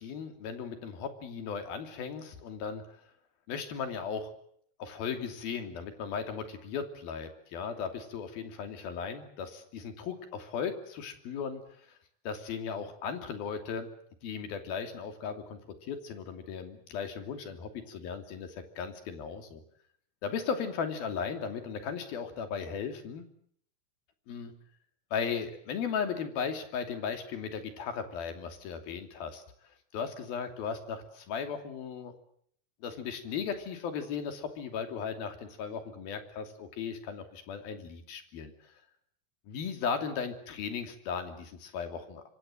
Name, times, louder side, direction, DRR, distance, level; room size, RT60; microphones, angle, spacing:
voice 1, 0.0-2.8 3.5-4.3 4.8-11.6 12.3-13.9 14.2-19.6 20.2-23.2 24.3-24.5 25.1-29.4 29.9-32.1 32.8-38.7 39.5-42.3, left 6 dB, 75° left, 7 dB, 4.6 m, -36 dB
26.0 x 24.0 x 7.7 m, 0.65 s
omnidirectional pair, 4.3 m